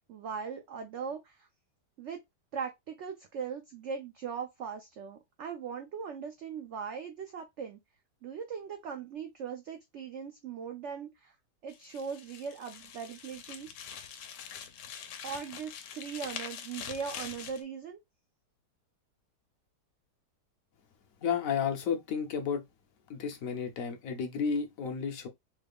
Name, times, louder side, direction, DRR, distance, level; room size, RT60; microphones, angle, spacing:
voice 1, 0.1-1.5 2.0-2.2 2.5-7.8 8.2-11.3 11.6-13.7 15.2-18.0, right 6 dB, 75° right, 0.6 m, -39 dB
sound 1, 11.7-17.6, left 8 dB, 80° left, 1.2 m, -44 dB
voice 2, 21.2-22.6 23.1-25.3, left 6 dB, 65° left, 0.9 m, -32 dB
3.3 x 2.3 x 3.3 m
omnidirectional pair, 1.8 m